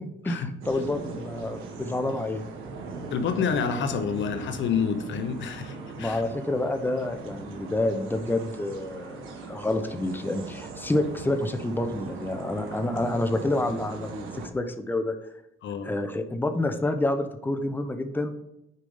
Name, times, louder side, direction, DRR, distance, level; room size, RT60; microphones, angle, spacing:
voice 1, 0.0-2.4 6.0-15.1 15.8-18.3, left 2 dB, 10° left, 7 dB, 0.8 m, -28 dB
sound 1, 0.6-14.5, right 3 dB, 90° right, 1.4 m, -39 dB
voice 2, 3.1-6.2 15.6-15.9, left 6 dB, 70° left, 9 dB, 0.8 m, -28 dB
6.6 x 5.1 x 5.5 m, 0.87 s
cardioid pair, 90°, 20 cm